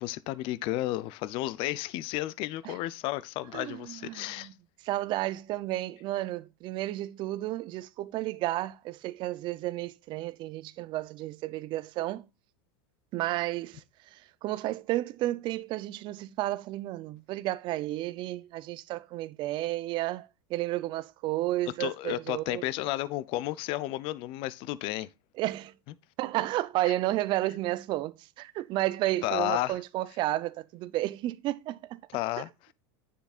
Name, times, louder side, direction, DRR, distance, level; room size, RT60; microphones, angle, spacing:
voice 1, 0.0-4.5 21.8-25.1 26.9-27.0 29.2-29.8 32.1-32.7, left 16 dB, 45° left, 0.6 m, -32 dB
voice 2, 3.5-4.5 4.8-12.3 13.1-22.6 25.4-25.8 26.2-32.0, right 16 dB, 40° right, 0.6 m, -32 dB
9.6 x 7.0 x 2.4 m
supercardioid pair, 130°, 12 cm